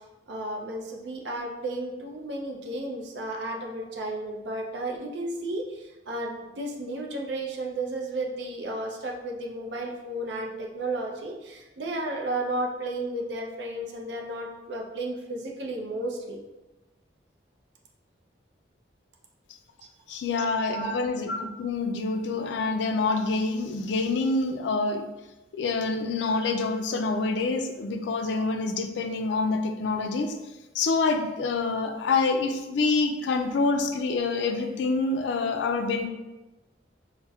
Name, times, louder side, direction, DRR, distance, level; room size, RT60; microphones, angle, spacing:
voice 1, 0.3-16.4 20.6-21.0, right 2 dB, 65° right, 0 dB, 0.5 m, -33 dB
voice 2, 20.1-25.1 25.5-30.3 30.7-36.1, left 3 dB, 70° left, 6 dB, 0.3 m, -26 dB
4.1 x 2.1 x 2.3 m, 1.1 s
head